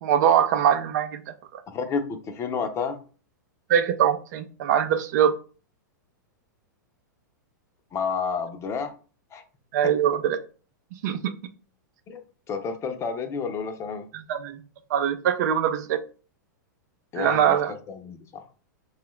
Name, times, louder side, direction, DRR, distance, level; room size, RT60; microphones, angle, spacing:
voice 1, 0.0-1.6 3.7-5.3 9.7-10.4 11.0-11.4 14.1-14.6 14.9-16.0 17.1-17.7, right 9 dB, 60° right, 9 dB, 0.5 m, -23 dB
voice 2, 1.7-3.0 7.9-8.9 9.3-9.4 9.8-9.9 12.1-12.2 12.5-14.1 17.1-18.4, left 5 dB, 25° left, 7 dB, 0.7 m, -30 dB
4.7 x 2.4 x 3.1 m, 0.38 s
hypercardioid pair, 115°, 11 cm